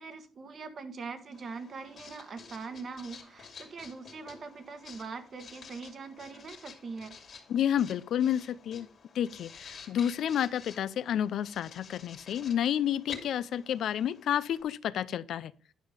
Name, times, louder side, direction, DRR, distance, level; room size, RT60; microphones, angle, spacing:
voice 1, 0.0-7.2, right 4 dB, 50° right, 1.4 m, -42 dB
Writing, 1.3-14.6, left 5 dB, 50° left, 2.3 m, -50 dB
voice 2, 7.5-8.9 9.1-15.5, left 10 dB, 70° left, 0.4 m, -30 dB
10.5 x 5.6 x 5.0 m
cardioid pair, 90°, 0 cm